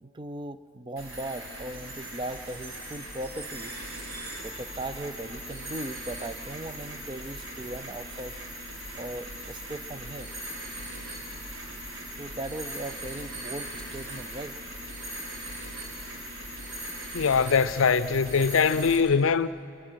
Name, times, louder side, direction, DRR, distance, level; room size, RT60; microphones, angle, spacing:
voice 1, 0.0-3.7 4.4-8.4 8.9-10.3 12.2-14.6, right 1 dB, 20° right, 0.5 m, -38 dB
sound 1, 1.0-19.0, right 1 dB, 70° right, 4.9 m, -39 dB
voice 2, 17.1-19.5, left 5 dB, 70° left, 0.5 m, -22 dB
27.0 x 23.0 x 6.3 m
head